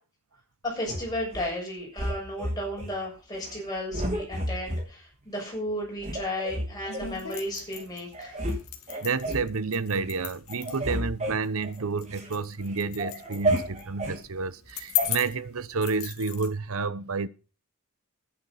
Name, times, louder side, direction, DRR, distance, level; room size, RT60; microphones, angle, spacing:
voice 1, 0.6-8.4, left 1 dB, 15° left, 7.3 m, -34 dB
sound 1, 0.8-1.5 2.0-2.9 3.4-3.6 3.9-4.9 5.4-5.5 6.0-7.1 7.7-7.8 8.1-8.6 8.9-9.5 10.0-10.2 10.5-12.3 12.7-14.2 15.0-15.1, right 1 dB, 30° right, 2.9 m, -31 dB
sound 2, 6.9-16.5, left 11 dB, 70° left, 2.1 m, -38 dB
voice 2, 9.0-17.3, right 4 dB, 70° right, 0.8 m, -30 dB
12.0 x 10.5 x 5.6 m
head